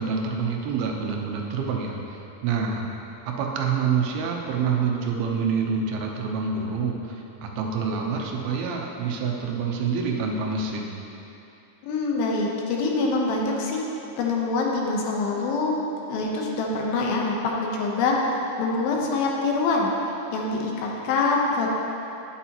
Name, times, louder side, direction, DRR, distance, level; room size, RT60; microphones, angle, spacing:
voice 1, 0.0-2.9 3.3-10.9, right 5 dB, 90° right, 0 dB, 2.8 m, -27 dB
voice 2, 11.8-13.8 14.2-15.8 16.1-19.9 20.3-21.7, left 3 dB, 80° left, -1 dB, 2.8 m, -25 dB
11.0 x 9.4 x 3.0 m, 2.9 s
omnidirectional pair, 4.3 m